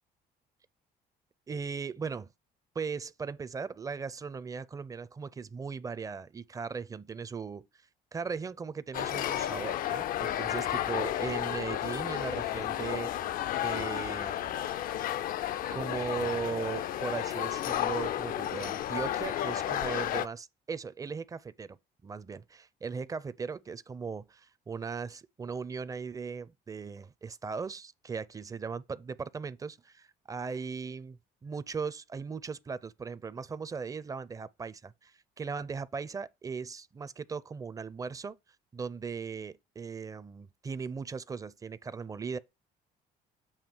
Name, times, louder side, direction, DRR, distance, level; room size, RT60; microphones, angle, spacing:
voice 1, 1.5-2.3 2.7-7.9 8.1-13.1 13.5-14.7 15.7-21.8 22.0-38.4 38.7-42.4, right 5 dB, 20° right, 0.4 m, -38 dB
sound 1, 8.9-20.3, left 12 dB, 55° left, 0.4 m, -32 dB
7.2 x 2.8 x 5.9 m
cardioid pair, 110°, 17 cm